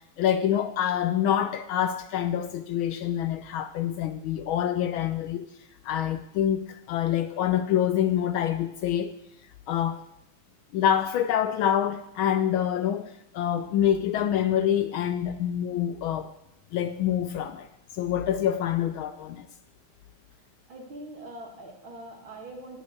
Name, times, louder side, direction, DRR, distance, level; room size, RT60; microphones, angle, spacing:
voice 1, 0.2-5.5 5.8-9.1 9.7-10.1 10.7-16.3 16.7-17.7 17.9-19.5, left 10 dB, 75° left, 1.3 m, -26 dB
voice 2, 20.7-22.8, right 1 dB, 65° right, 3.1 m, -42 dB
16.5 x 6.1 x 8.3 m
omnidirectional pair, 2.4 m